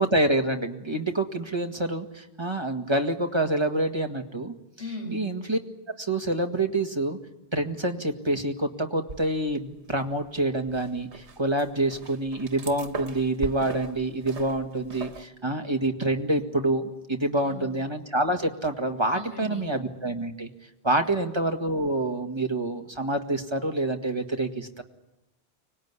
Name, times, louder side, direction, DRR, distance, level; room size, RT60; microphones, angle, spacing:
voice 1, 0.0-4.5 5.1-5.6 6.0-7.2 7.5-20.5 20.8-24.8, right 1 dB, 25° right, 4 dB, 1.9 m, -27 dB
voice 2, 4.8-5.2 17.4-17.7 19.1-19.7 21.0-21.2, left 1 dB, 65° left, 2 dB, 6.9 m, -37 dB
sound 1, 9.1-9.8 10.1-15.3, right 4 dB, 90° right, 1.6 m, -40 dB
24.5 x 19.5 x 9.7 m, 0.96 s
omnidirectional pair, 1.1 m